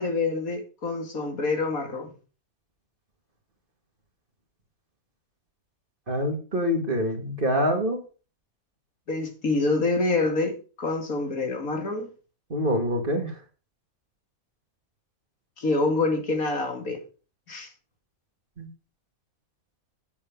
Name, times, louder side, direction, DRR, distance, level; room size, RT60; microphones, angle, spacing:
voice 1, 0.0-2.1 9.1-12.1 15.6-17.0 17.5-17.7, left 3 dB, 75° left, 4 dB, 2.9 m, -26 dB
voice 2, 6.1-8.0 12.5-13.3 18.6-18.7, equal, 40° right, 4 dB, 2.3 m, -25 dB
8.8 x 8.4 x 5.3 m, 0.36 s
omnidirectional pair, 1.5 m